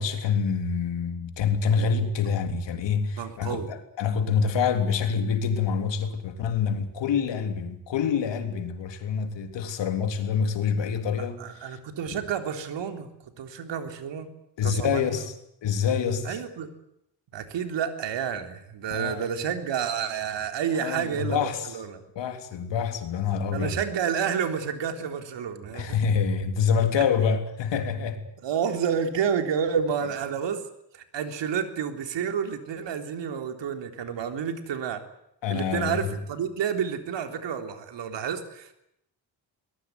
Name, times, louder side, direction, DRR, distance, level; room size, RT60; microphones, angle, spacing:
voice 1, 0.0-11.8 12.1-12.2 14.6-15.3 15.6-16.4 18.9-19.3 20.8-21.7 22.2-23.8 25.7-28.2 35.4-36.2, left 6 dB, 90° left, 3.5 m, -26 dB
voice 2, 3.2-3.7 11.2-13.1 13.4-14.3 14.6-15.2 16.2-16.7 17.3-22.0 23.5-26.0 28.4-30.6 30.9-35.0 35.5-38.7, right 7 dB, 85° right, 3.7 m, -30 dB
23.0 x 20.5 x 9.6 m
wide cardioid pair, 145°, 42 cm